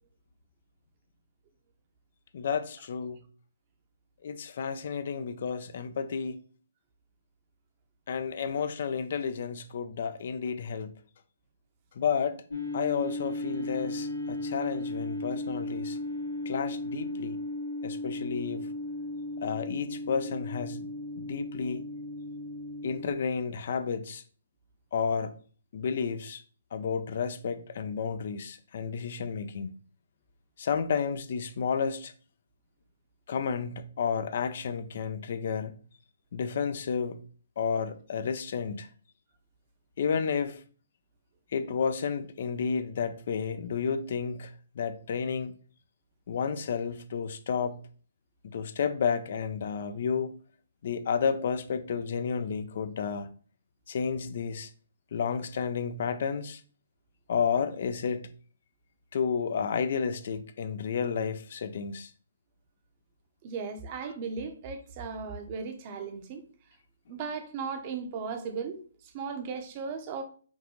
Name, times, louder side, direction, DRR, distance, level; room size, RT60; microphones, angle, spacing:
voice 1, 2.3-3.2 4.2-6.4 8.1-10.9 12.0-12.4 12.7-16.0 16.5-17.4 17.8-18.7 19.4-20.9 21.2-21.8 22.8-24.2 24.9-25.4 25.7-26.4 26.7-29.7 30.6-32.1 33.3-35.8 36.3-37.2 37.6-38.9 40.0-40.6 41.5-45.5 46.3-47.8 48.4-50.3 50.8-53.3 53.9-54.7 55.1-56.6 57.3-58.3 59.1-62.1, left 6 dB, 55° left, 0.5 m, -31 dB
sound 1, 12.5-23.1, left 2 dB, 90° left, 1.8 m, -35 dB
voice 2, 63.4-66.4 67.1-70.2, right 5 dB, 30° right, 0.8 m, -36 dB
5.3 x 2.6 x 3.1 m
hypercardioid pair, 155°, 0 cm